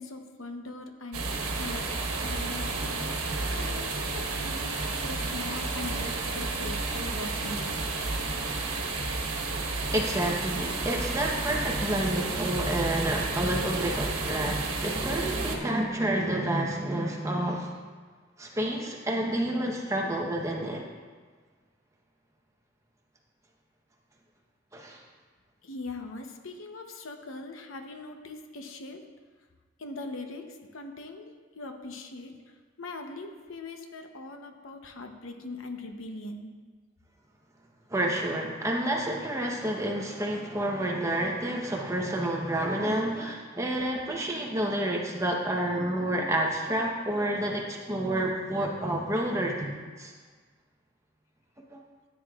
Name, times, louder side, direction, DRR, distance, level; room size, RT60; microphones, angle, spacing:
voice 1, 0.0-1.9 2.2-3.2 3.5-7.8 25.6-29.0 29.8-36.5, left 2 dB, 70° left, 4 dB, 0.9 m, -41 dB
sound 1, 1.1-15.6, right 3 dB, 85° right, 1.3 m, -31 dB
voice 2, 9.9-17.7 18.4-20.9 24.7-25.0 37.9-50.1, right 1 dB, 15° right, 0 dB, 0.9 m, -29 dB
13.5 x 9.3 x 2.4 m, 1.5 s
head